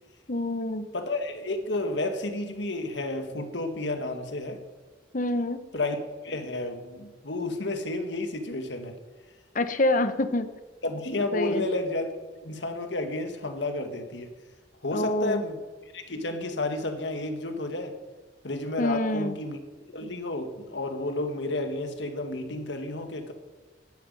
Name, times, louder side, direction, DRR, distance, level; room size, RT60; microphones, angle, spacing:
voice 1, 0.3-0.9 5.1-5.6 9.5-10.5 11.3-11.6 14.9-15.4 18.8-19.3, left 1 dB, 45° left, 11 dB, 1.0 m, -26 dB
voice 2, 0.9-4.6 5.7-6.0 6.2-9.0 10.8-12.1 12.4-14.3 14.8-15.6 15.9-18.0 18.4-23.3, left 2 dB, 75° left, 6 dB, 1.8 m, -31 dB
11.5 x 9.3 x 9.2 m, 1.2 s
head